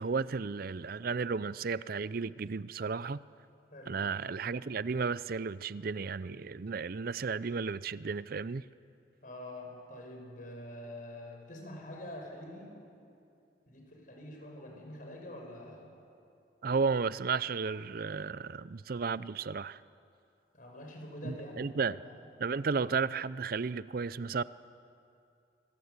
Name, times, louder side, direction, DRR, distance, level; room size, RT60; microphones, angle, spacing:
voice 1, 0.0-3.2 3.9-8.7 16.6-19.8 21.2-22.0 22.4-24.4, right 5 dB, 55° right, 17 dB, 0.5 m, -33 dB
voice 2, 3.7-4.0 9.2-12.7 13.7-15.9 20.5-22.2, left 1 dB, 50° left, 1 dB, 5.9 m, -46 dB
25.5 x 24.0 x 8.2 m, 2.6 s
head